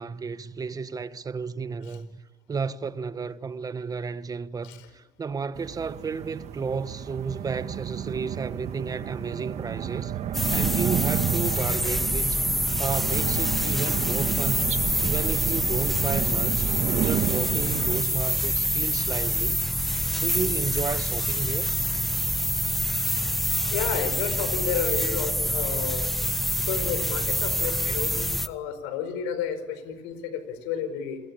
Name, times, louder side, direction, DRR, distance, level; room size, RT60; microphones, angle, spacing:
voice 1, 0.0-2.2 2.5-10.1 10.5-12.5 12.8-14.7 15.0-19.6 20.2-21.7, right 5 dB, 30° right, 1.3 m, -32 dB
sound 1, 5.6-18.0, right 10 dB, 55° right, 1.7 m, -31 dB
sound 2, 10.3-28.5, equal, ahead, 1.2 m, -26 dB
voice 2, 23.7-26.1 26.7-31.2, left 8 dB, 90° left, 4.9 m, -31 dB
29.0 x 22.5 x 8.7 m
supercardioid pair, 90°, 13 cm